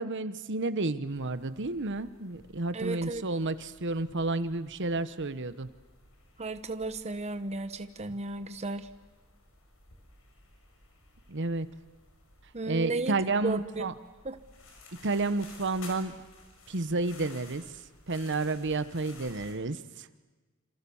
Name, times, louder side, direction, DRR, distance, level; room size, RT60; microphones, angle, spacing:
voice 1, 0.0-5.7 11.3-11.7 12.7-13.9 15.0-16.1 16.7-17.6 18.1-20.1, right 2 dB, 55° right, 13 dB, 1.1 m, -31 dB
sound 1, 1.0-19.5, left 2 dB, 65° left, 6.1 m, -55 dB
voice 2, 2.7-3.3 6.4-8.9 12.5-13.9 14.2-14.4, right 3 dB, 30° right, 10 dB, 1.0 m, -34 dB
28.0 x 27.0 x 7.2 m, 1.2 s
head